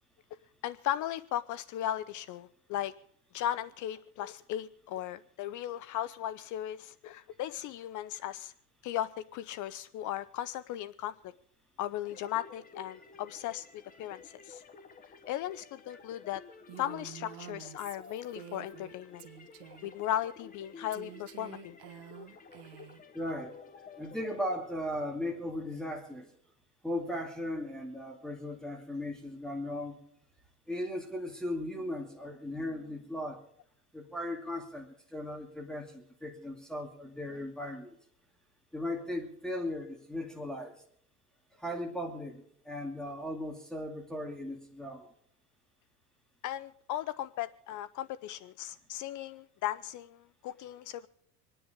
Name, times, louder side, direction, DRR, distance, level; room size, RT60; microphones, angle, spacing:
voice 1, 0.6-2.9 3.3-8.5 8.8-11.2 11.8-13.7 14.0-14.6 15.3-16.4 16.8-19.3 19.8-21.7 46.4-51.1, left 12 dB, 40° left, 15 dB, 0.6 m, -36 dB
sound 1, 12.0-24.6, left 4 dB, 20° left, 1.3 m, -52 dB
Female speech woman speaking, 16.7-18.9 19.2-20.0 20.9-23.0, right 13 dB, 55° right, 1.6 m, -49 dB
voice 2, 23.1-23.5 24.0-26.3 26.8-30.0 30.7-33.4 33.9-38.0 38.7-40.8 41.6-45.1, left 1 dB, ahead, 0 dB, 2.4 m, -37 dB
27.0 x 10.0 x 3.7 m, 0.68 s
supercardioid pair, 135°, 47 cm